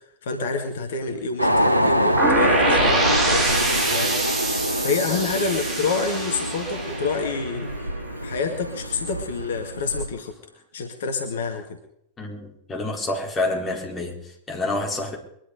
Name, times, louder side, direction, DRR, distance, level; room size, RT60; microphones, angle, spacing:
voice 1, 0.2-4.5 4.8-7.9 8.2-10.4 10.7-11.8, left 4 dB, 60° left, 2.0 m, -28 dB
sound 1, 1.4-10.1, equal, 90° right, 0.9 m, -25 dB
sound 2, 2.2-8.0, right 2 dB, 20° right, 3.7 m, -25 dB
voice 2, 12.2-15.2, left 2 dB, 15° left, 4.4 m, -28 dB
23.0 x 11.5 x 5.2 m
figure-of-eight pair, 90°, 0 cm